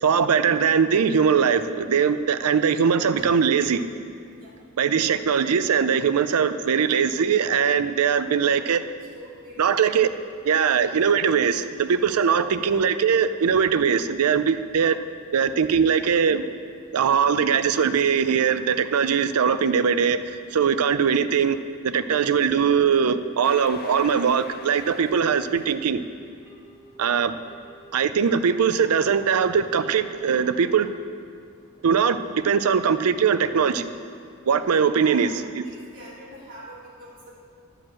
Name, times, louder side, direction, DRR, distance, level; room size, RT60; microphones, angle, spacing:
voice 1, 0.0-3.8 4.8-8.8 9.6-10.1 10.5-15.0 15.3-16.4 16.9-21.6 21.8-26.0 27.0-27.4 27.9-30.9 31.8-33.9 34.5-35.3 35.6-35.7, right 6 dB, 90° right, 12 dB, 0.5 m, -21 dB
voice 2, 9.1-9.8 34.9-35.3 35.6-37.3, right 1 dB, 40° right, -6 dB, 2.6 m, -43 dB
sound 1, 23.4-26.0, left 6 dB, 45° left, 0.4 m, -42 dB
Telephone, 25.5-26.0 26.5-27.0 27.5-28.0 28.5-29.0 29.5-30.0 30.5-31.0, right 2 dB, 10° right, 2.1 m, -51 dB
11.5 x 5.0 x 7.5 m, 2.3 s
head